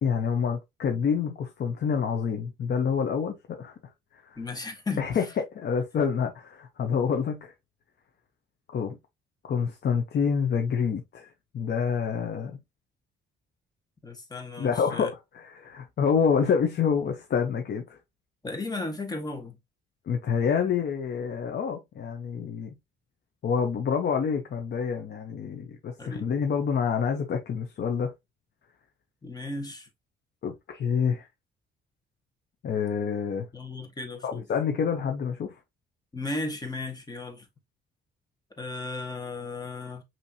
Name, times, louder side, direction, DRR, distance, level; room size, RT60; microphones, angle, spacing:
voice 1, 0.0-3.7 4.2-4.4 5.0-7.5 8.7-9.0 9.4-12.6 14.6-18.0 20.1-22.8 23.4-28.1 30.4-31.3 32.6-33.5 34.2-35.5, left 6 dB, 55° left, 0.9 m, -27 dB
voice 2, 4.4-5.0 14.0-15.1 18.4-19.6 26.0-26.3 29.2-29.9 33.5-34.5 36.1-37.5 38.6-40.0, left 3 dB, 20° left, 1.5 m, -35 dB
5.6 x 3.0 x 2.8 m
cardioid pair, 90°, 20 cm